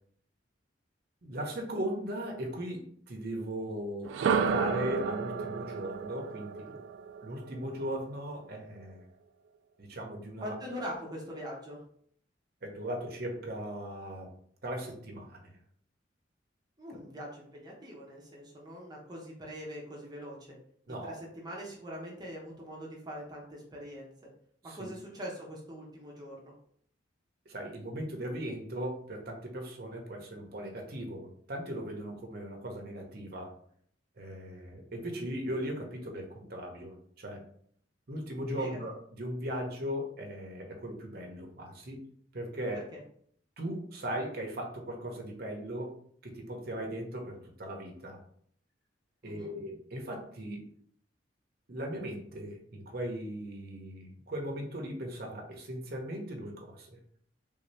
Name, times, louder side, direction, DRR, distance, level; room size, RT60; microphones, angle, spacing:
voice 1, 1.2-6.8 7.2-9.1 9.8-10.5 12.6-14.3 14.6-15.6 16.9-17.0 20.9-21.1 24.6-24.9 27.5-33.5 34.2-37.5 38.1-42.9 43.6-45.9 46.2-48.2 49.2-50.7 51.7-57.0, right 1 dB, 55° right, 1 dB, 0.8 m, -38 dB
sound 1, 4.0-8.0, right 6 dB, 85° right, 0.3 m, -32 dB
voice 2, 10.4-11.8 16.8-20.4 20.9-24.1 24.6-26.5 38.6-38.8 42.7-43.0 49.2-49.5, equal, 20° right, -3 dB, 0.9 m, -43 dB
3.5 x 2.7 x 3.3 m, 0.62 s
head